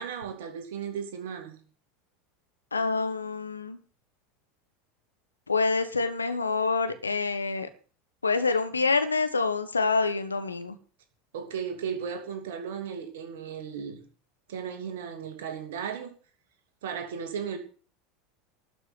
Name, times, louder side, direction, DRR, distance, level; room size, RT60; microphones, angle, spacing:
voice 1, 0.0-1.6 11.3-14.0 14.5-16.1 16.8-17.6, right 7 dB, 65° right, 2.9 m, -35 dB
voice 2, 2.7-3.8 5.5-7.7 8.2-10.8, left 4 dB, 85° left, 1.4 m, -26 dB
12.5 x 6.3 x 9.2 m
figure-of-eight pair, 80°, 0 cm